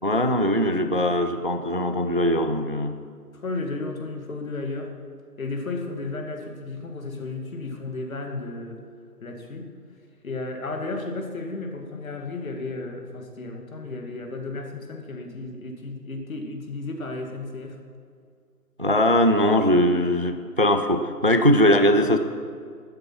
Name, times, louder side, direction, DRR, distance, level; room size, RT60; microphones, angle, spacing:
voice 1, 0.0-3.0 18.8-22.2, left 1 dB, 35° right, 8 dB, 0.5 m, -20 dB
voice 2, 3.3-4.9 5.4-8.8 9.2-9.7 10.2-17.8, left 3 dB, 55° left, 3 dB, 2.3 m, -33 dB
12.5 x 10.5 x 5.9 m, 2.2 s
figure-of-eight pair, 155°, 49 cm